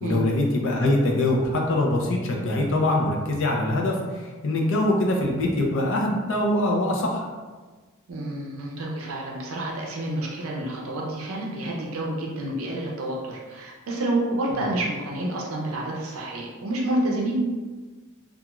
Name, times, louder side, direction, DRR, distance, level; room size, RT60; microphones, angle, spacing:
voice 1, 0.0-7.3, left 1 dB, 60° left, 0 dB, 0.5 m, -23 dB
voice 2, 8.1-17.3, right 1 dB, 65° right, -2 dB, 0.5 m, -29 dB
2.4 x 2.3 x 2.9 m, 1.3 s
head